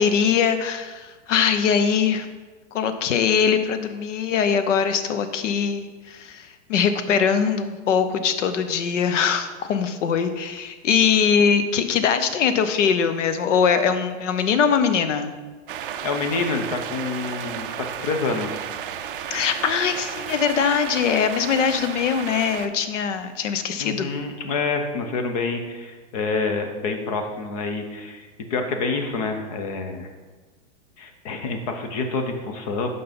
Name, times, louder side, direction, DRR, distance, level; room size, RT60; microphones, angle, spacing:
voice 1, 0.0-2.3 2.7-15.3 19.3-24.1, left 7 dB, 80° left, 10 dB, 0.8 m, -22 dB
sound 1, 15.7-22.7, right 9 dB, 50° right, 0.4 m, -33 dB
voice 2, 16.0-18.6 23.8-30.1 31.0-32.9, left 4 dB, 30° left, 5 dB, 0.7 m, -27 dB
5.9 x 5.5 x 5.2 m, 1.3 s
supercardioid pair, 175°, 36 cm